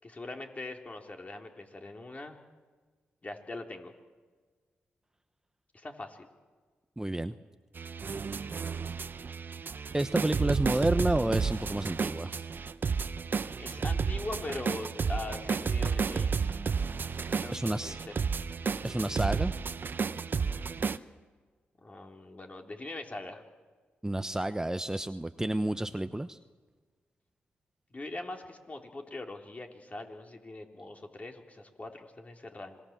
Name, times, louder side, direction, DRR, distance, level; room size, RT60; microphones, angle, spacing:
voice 1, 0.0-2.4 3.2-3.9 5.7-6.3 13.6-16.6 17.3-18.1 21.8-23.4 27.9-32.8, left 2 dB, 35° left, 3 dB, 3.7 m, -42 dB
voice 2, 7.0-7.3 9.9-12.4 17.5-18.0 18.8-19.5 24.0-26.4, right 1 dB, 15° right, 11 dB, 0.9 m, -30 dB
sound 1, 7.8-21.0, right 5 dB, 55° right, 0.9 m, -32 dB
26.5 x 20.0 x 7.5 m, 1.4 s
supercardioid pair, 50°, 4 cm